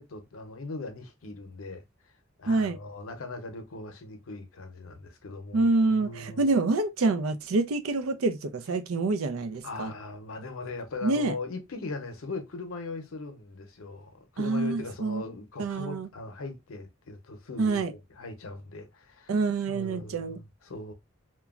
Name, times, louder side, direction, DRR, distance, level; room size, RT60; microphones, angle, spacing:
voice 1, 0.0-2.1 2.4-6.5 9.6-17.8 18.2-19.3 19.7-20.9, left 3 dB, 80° left, 0.7 m, -39 dB
voice 2, 2.5-2.8 5.5-9.9 11.0-11.3 14.4-15.2 15.6-16.1 17.6-17.9 19.3-20.4, right 3 dB, 85° right, 0.5 m, -27 dB
3.0 x 2.2 x 2.3 m
head